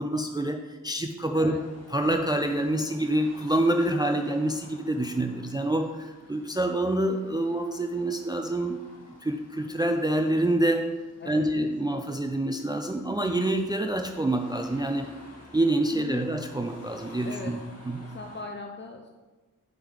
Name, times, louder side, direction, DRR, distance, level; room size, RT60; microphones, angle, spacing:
voice 1, 0.0-1.6 1.9-8.8 9.2-10.9 11.3-15.1 15.5-17.6 17.9-18.0, right 1 dB, 15° right, 4 dB, 0.4 m, -27 dB
voice 2, 1.3-1.7 11.2-11.5 11.9-12.3 15.9-16.4 17.2-17.5 18.0-19.1, left 3 dB, 35° left, 3 dB, 0.6 m, -40 dB
Car passing by / Traffic noise roadway noise / Engine, 1.5-18.4, left 1 dB, 50° left, 1.7 m, -51 dB
6.7 x 3.7 x 4.9 m, 1.2 s
cardioid pair, 70°, 33 cm